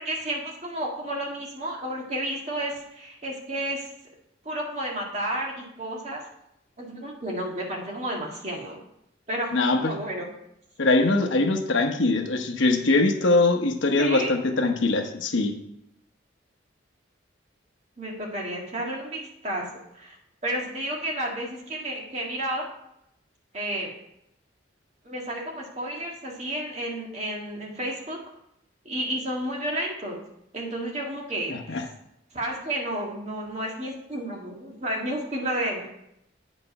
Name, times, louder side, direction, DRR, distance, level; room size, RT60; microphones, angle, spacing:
voice 1, 0.0-3.9 4.4-6.2 6.8-8.8 9.3-10.3 14.0-14.3 18.0-19.6 19.9-20.2 20.4-22.7 23.5-23.9 25.0-28.2 28.9-30.2 30.5-31.8 32.3-35.9, right 1 dB, 35° right, -2 dB, 1.8 m, -31 dB
voice 2, 9.5-9.9 10.8-15.5 31.5-31.8, left 2 dB, 80° left, 5 dB, 1.0 m, -22 dB
8.7 x 5.2 x 5.3 m, 0.80 s
head